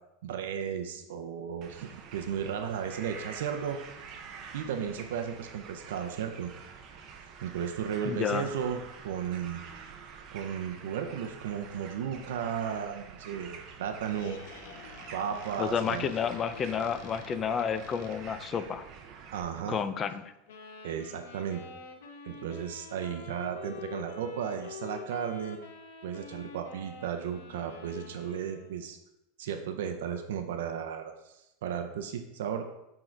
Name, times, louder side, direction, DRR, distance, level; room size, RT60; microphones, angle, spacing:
voice 1, 0.2-3.8 4.5-6.5 7.4-9.6 10.3-14.4 15.1-16.1 19.3-19.8 20.8-21.6 22.2-25.6 26.0-29.0 29.4-31.1 31.6-32.6, right 8 dB, 85° right, 6 dB, 0.6 m, -34 dB
sound 1, 1.6-19.4, right 6 dB, 30° right, 0.6 m, -47 dB
voice 2, 8.0-8.5 15.6-18.9 19.7-20.2, left 7 dB, 20° left, 11 dB, 0.3 m, -30 dB
Squeak, 13.9-18.5, left 7 dB, 50° left, 0.6 m, -49 dB
sound 2, 20.5-28.9, left 5 dB, 90° left, 0.9 m, -47 dB
6.3 x 3.8 x 4.5 m, 0.90 s
supercardioid pair, 175°, 0 cm